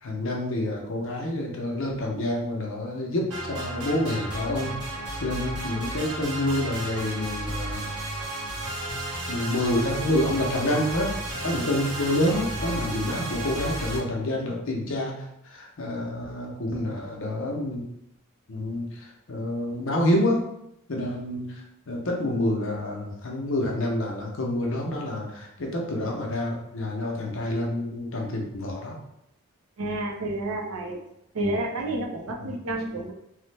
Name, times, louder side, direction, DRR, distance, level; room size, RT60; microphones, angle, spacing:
voice 1, 0.0-4.7 5.2-7.9 9.3-11.1 11.4-15.2 15.4-17.8 18.5-20.4 20.9-21.5 21.9-29.0 31.4-31.5 32.4-32.5, left 1 dB, 60° left, 0 dB, 0.6 m, -28 dB
sound 1, 3.3-14.0, right 1 dB, 90° right, 0.9 m, -33 dB
voice 2, 29.8-31.0 31.3-33.1, right 2 dB, 75° right, 1 dB, 0.5 m, -30 dB
3.1 x 2.1 x 3.2 m, 0.82 s
head